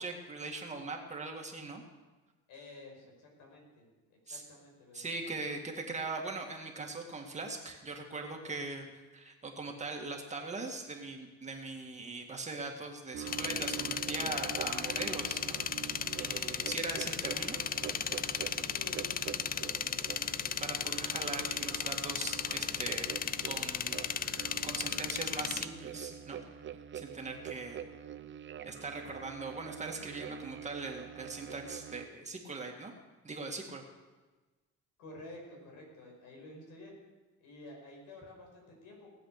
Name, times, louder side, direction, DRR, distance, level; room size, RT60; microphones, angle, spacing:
voice 1, 0.0-1.8 4.3-4.4 4.9-8.9 9.1-15.9 16.2-17.6 20.6-23.1 23.5-24.0 24.4-26.4 26.9-27.8 28.6-32.9 33.2-33.8, right 3 dB, 25° right, 2 dB, 2.0 m, -41 dB
voice 2, 2.5-5.3 18.7-20.3 35.0-37.0 37.4-39.1, left 2 dB, 90° left, 0 dB, 5.4 m, -51 dB
sound 1, 13.1-32.1, right 9 dB, 40° right, 0.7 m, -45 dB
sound 2, 13.3-25.7, left 8 dB, 30° left, 0.4 m, -35 dB
18.5 x 7.9 x 6.6 m, 1.2 s
cardioid pair, 130°, 30 cm